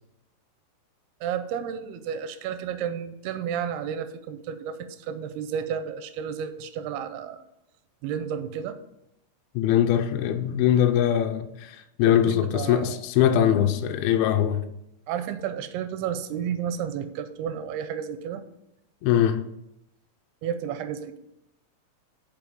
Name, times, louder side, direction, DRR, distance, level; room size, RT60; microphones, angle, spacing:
voice 1, 1.2-7.4 8.0-8.8 12.1-13.0 15.1-18.4 20.4-21.2, right 8 dB, 85° right, 2.7 m, -32 dB
voice 2, 9.6-14.6 19.0-19.4, left 10 dB, 80° left, 2.4 m, -22 dB
6.9 x 5.7 x 5.3 m
omnidirectional pair, 4.5 m